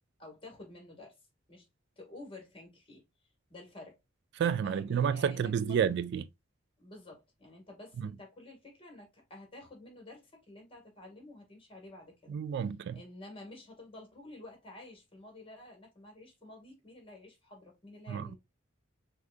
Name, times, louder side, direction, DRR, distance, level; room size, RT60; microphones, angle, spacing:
voice 1, 0.2-1.2 1.5-1.6 2.0-3.0 3.5-4.0 4.6-5.8 6.8-12.4 12.9-18.4, left 2 dB, 30° left, 1.9 m, -51 dB
voice 2, 4.4-6.3 8.0-8.1 12.3-13.0 18.1-18.3, right 7 dB, 60° right, 0.3 m, -30 dB
6.1 x 2.5 x 2.4 m
head